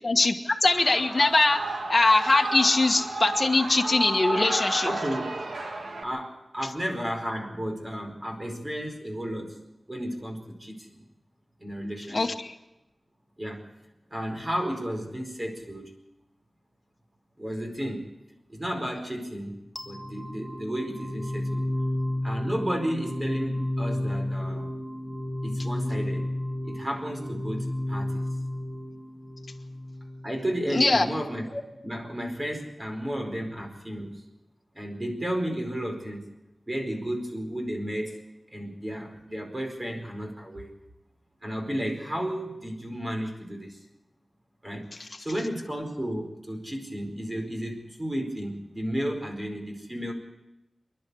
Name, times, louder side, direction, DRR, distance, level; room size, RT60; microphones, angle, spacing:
voice 1, 0.0-1.6 1.9-4.9 12.1-12.5 30.7-31.1, left 2 dB, 40° left, 3 dB, 1.4 m, -22 dB
Shout / Cheering, 0.6-6.0, right 2 dB, 85° right, 2.1 m, -32 dB
voice 2, 4.8-5.4 6.0-9.6 9.9-11.0 11.6-12.4 13.4-13.7 14.1-15.8 17.4-18.1 18.5-19.5 19.8-21.6 22.2-24.7 25.4-26.3 26.6-28.2 30.2-34.2 34.7-36.2 36.7-38.2 38.5-40.7 41.4-43.8 44.6-44.9 45.2-50.1, equal, 25° right, 3 dB, 4.6 m, -33 dB
sound 1, 19.8-30.7, left 1 dB, 5° left, 1.7 m, -32 dB
27.5 x 11.5 x 8.4 m, 0.96 s
wide cardioid pair, 90°, 0 cm